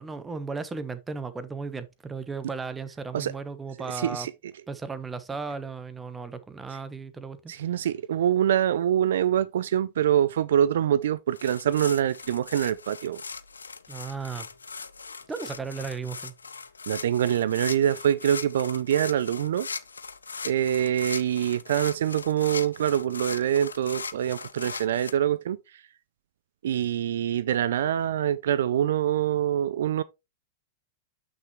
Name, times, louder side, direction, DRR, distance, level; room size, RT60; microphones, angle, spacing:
voice 1, 0.0-4.3 4.7-7.5 13.9-14.5 15.3-16.3, right 4 dB, 15° right, 1.0 m, -35 dB
voice 2, 3.9-4.3 7.5-13.2 16.9-19.7 20.4-25.6 26.6-30.0, right 10 dB, 70° right, 0.4 m, -25 dB
sound 1, 11.3-25.1, left 5 dB, 90° left, 0.5 m, -39 dB
8.0 x 5.9 x 3.1 m
hypercardioid pair, 100°, 0 cm